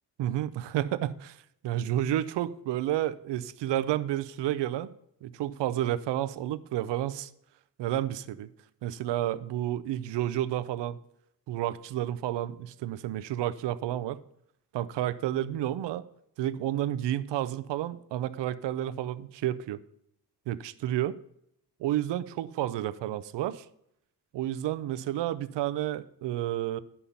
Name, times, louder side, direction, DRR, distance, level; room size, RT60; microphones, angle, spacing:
voice 1, 0.2-4.9 5.2-7.3 7.8-8.5 8.8-11.0 11.5-14.2 14.7-16.0 16.4-19.8 20.5-21.2 21.8-23.7 24.3-26.8, right 12 dB, 80° right, 15 dB, 0.7 m, -31 dB
10.0 x 5.6 x 5.6 m, 0.74 s
cardioid pair, 140°, 41 cm